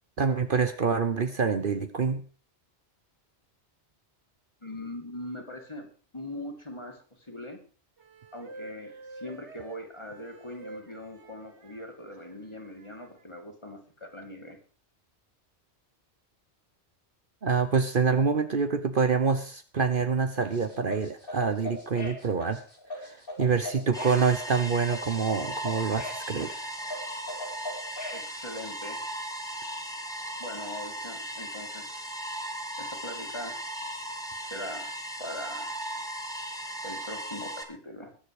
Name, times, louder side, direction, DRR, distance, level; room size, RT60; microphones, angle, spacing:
voice 1, 0.2-2.2 17.4-22.6 23.0-26.7, right 5 dB, 50° right, 9 dB, 1.2 m, -26 dB
voice 2, 4.6-7.6 8.3-14.6 28.1-29.0 30.4-32.2 32.8-33.6 34.4-34.9 35.2-35.7 36.8-38.2, left 1 dB, 25° left, 3 dB, 2.8 m, -41 dB
sound 1, 8.0-11.8 12.6-13.2, right 2 dB, 80° right, 1.9 m, -47 dB
sound 2, 20.4-28.3, left 1 dB, 55° left, 3.8 m, -39 dB
sound 3, 23.9-37.6, right 1 dB, 5° left, 1.8 m, -37 dB
21.5 x 7.5 x 4.9 m, 0.39 s
omnidirectional pair, 1.2 m